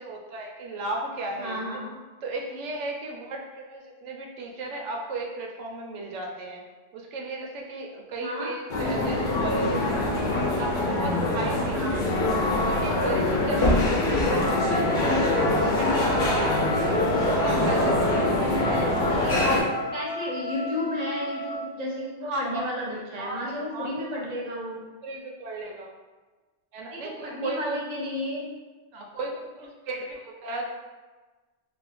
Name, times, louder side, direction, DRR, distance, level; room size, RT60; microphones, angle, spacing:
voice 1, 0.0-1.6 2.2-6.6 6.9-10.2 10.6-12.0 12.6-16.8 17.2-18.3 18.6-18.9 22.3-22.7 23.2-23.9 24.1-24.2 25.0-25.9 26.7-27.8 28.9-30.7, right 2 dB, 90° right, 0 dB, 0.9 m, -35 dB
voice 2, 1.4-1.9 8.2-8.5 11.7-12.0 13.5-13.9 16.0-16.5 19.1-19.5 19.9-24.8 26.9-28.5, equal, 40° right, -3 dB, 0.7 m, -33 dB
sound 1, 8.7-19.6, left 2 dB, 50° left, 0.7 m, -24 dB
Trumpet, 14.3-21.7, right 1 dB, 90° left, 0.9 m, -32 dB
2.5 x 2.4 x 3.6 m, 1.3 s
omnidirectional pair, 1.2 m